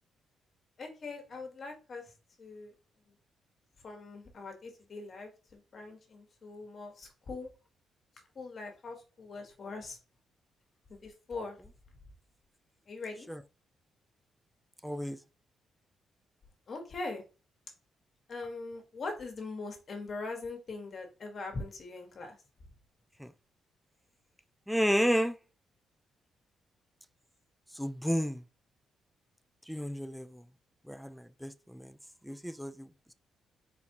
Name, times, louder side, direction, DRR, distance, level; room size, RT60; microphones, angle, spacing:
voice 1, 0.8-2.1 2.4-2.7 3.8-7.5 8.3-10.0 10.9-11.6 12.9-13.3 16.7-17.2 18.3-22.4, left 3 dB, 40° left, 1.5 m, -42 dB
voice 2, 14.8-15.2 23.2-23.3 24.7-25.4 27.8-28.4 29.7-30.4 30.9-32.0 32.2-32.9, equal, ahead, 0.4 m, -31 dB
4.2 x 4.1 x 2.9 m
cardioid pair, 140°, 0 cm